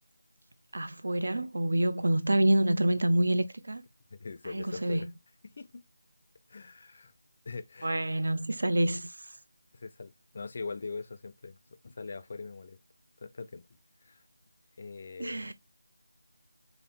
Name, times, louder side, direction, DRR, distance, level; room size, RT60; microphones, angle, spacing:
voice 1, 0.7-3.8 4.4-5.1 7.8-9.2 15.2-15.5, right 1 dB, 70° right, 0.6 m, -27 dB
voice 2, 4.1-5.1 5.4-5.8 6.5-7.1 7.5-8.0 9.7-11.6 11.8-12.8 13.2-13.7 14.0-14.2 14.8-15.5, left 4 dB, 35° left, 0.4 m, -42 dB
5.3 x 2.1 x 2.8 m
figure-of-eight pair, 170°, 0 cm